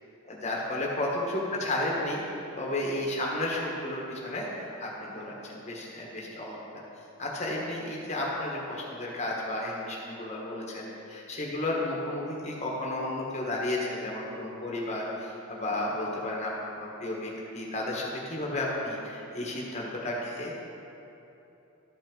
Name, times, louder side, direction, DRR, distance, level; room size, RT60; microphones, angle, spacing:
voice 1, 0.3-2.2 2.6-4.5 4.8-6.6 7.2-16.5 16.8-20.5, left 1 dB, 30° left, -3 dB, 1.3 m, -32 dB
13.0 x 5.4 x 3.8 m, 2.9 s
head